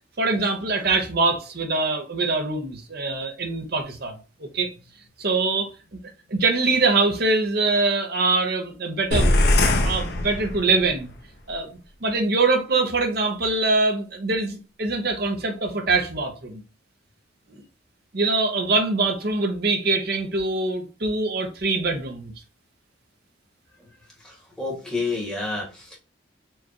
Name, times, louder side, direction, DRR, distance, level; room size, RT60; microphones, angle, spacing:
voice 1, 0.2-4.7 5.2-5.7 6.3-11.1 11.5-11.7 12.0-16.6 18.1-22.3, right 3 dB, 50° right, 0.8 m, -23 dB
sound 1, 9.1-11.0, left 1 dB, 50° left, 0.7 m, -21 dB
voice 2, 24.2-26.0, left 3 dB, 5° left, 1.3 m, -30 dB
4.5 x 2.6 x 2.9 m
head